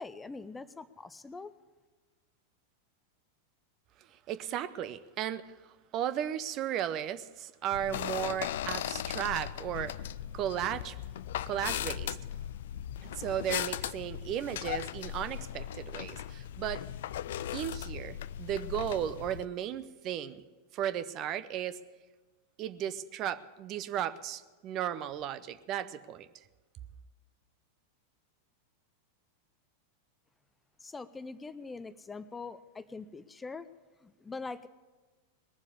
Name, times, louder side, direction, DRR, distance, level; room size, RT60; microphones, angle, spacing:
voice 1, 0.0-1.5 30.8-33.7 34.0-34.7, left 4 dB, 10° left, 14 dB, 0.6 m, -43 dB
voice 2, 4.3-5.4 5.9-10.0 10.3-11.0 11.5-12.2 13.0-16.8 17.5-20.4 20.7-21.8 22.6-26.3, right 10 dB, 35° right, 13 dB, 0.7 m, -35 dB
sound 1, 7.7-19.5, left 11 dB, 55° left, 0.4 m, -38 dB
20.0 x 7.3 x 8.3 m, 1.3 s
figure-of-eight pair, 90°, 0 cm